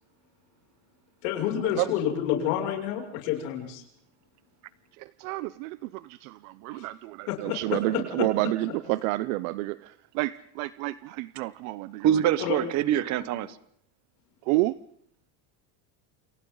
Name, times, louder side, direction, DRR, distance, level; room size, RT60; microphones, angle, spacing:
voice 1, 1.2-3.8 6.7-6.9 7.3-8.0 12.4-12.6, left 10 dB, 75° left, 1 dB, 6.8 m, -29 dB
voice 2, 5.0-12.2 14.5-14.7, right 19 dB, 70° right, 16 dB, 0.8 m, -30 dB
voice 3, 12.0-13.6, right 11 dB, 40° right, 15 dB, 1.3 m, -24 dB
29.0 x 28.5 x 4.0 m, 0.67 s
cardioid pair, 165°, 44 cm